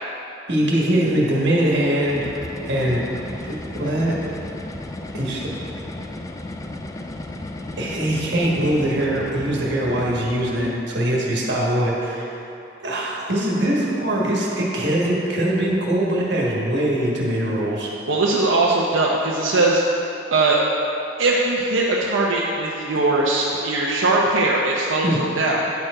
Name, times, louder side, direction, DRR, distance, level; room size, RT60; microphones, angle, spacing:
voice 1, 0.5-2.3 2.6-3.0 3.4-4.1 5.1-5.4 7.8-12.3 12.8-17.9 25.0-25.2, right 1 dB, 65° right, -4 dB, 1.4 m, -22 dB
sound 1, 1.7-10.8, left 1 dB, 15° left, 0.3 m, -34 dB
voice 2, 18.1-19.8 20.3-20.6 21.2-25.7, right 2 dB, 90° right, -4 dB, 0.6 m, -20 dB
9.3 x 4.5 x 4.9 m, 3.0 s
head